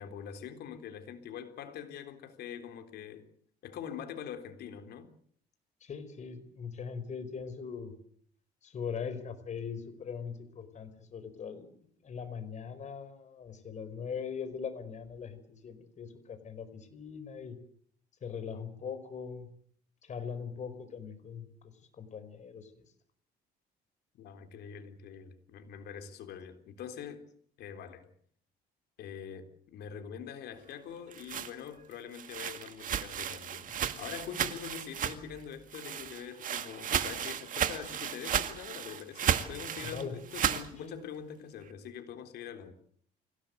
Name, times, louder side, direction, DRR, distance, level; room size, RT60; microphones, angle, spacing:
voice 1, 0.0-3.3 3.6-5.1 24.1-27.3 27.6-28.1 29.0-42.7, left 8 dB, 75° left, 3.7 m, -44 dB
voice 2, 5.8-7.9 8.6-11.7 12.0-17.6 18.2-19.5 20.0-21.5 22.0-22.8 39.8-40.2 40.8-40.9, left 6 dB, 45° left, 4.9 m, -41 dB
sound 1, 30.9-35.4 35.7-40.7, right 9 dB, 50° right, 2.1 m, -34 dB
26.0 x 17.5 x 8.0 m
cardioid pair, 110°, 17 cm